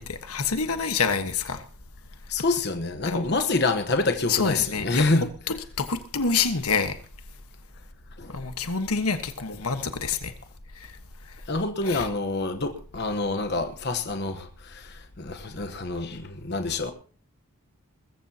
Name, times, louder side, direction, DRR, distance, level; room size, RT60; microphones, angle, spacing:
voice 1, 0.0-1.6 3.0-3.4 4.3-5.2 5.5-7.0 8.3-10.3 11.8-12.1, left 5 dB, 85° left, 1.4 m, -27 dB
voice 2, 2.3-5.2 8.2-8.3 11.5-16.9, left 3 dB, 50° left, 1.2 m, -27 dB
21.5 x 14.5 x 2.9 m
head